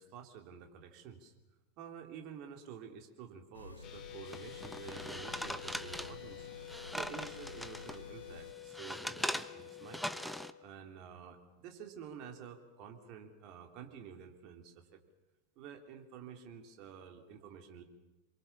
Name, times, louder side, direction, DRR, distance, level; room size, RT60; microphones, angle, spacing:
voice 1, 0.0-1.3 1.8-6.5 6.9-10.1 10.6-15.0 15.6-17.8, right 7 dB, 40° right, 4 dB, 3.3 m, -50 dB
sound 1, 3.5-8.5, left 3 dB, 80° left, 1.2 m, -52 dB
sound 2, 3.8-10.5, left 14 dB, 30° left, 2.3 m, -50 dB
sound 3, 4.3-8.0 8.4-10.5, equal, ahead, 0.9 m, -41 dB
27.0 x 23.0 x 7.2 m, 1.1 s
figure-of-eight pair, 90°, 0 cm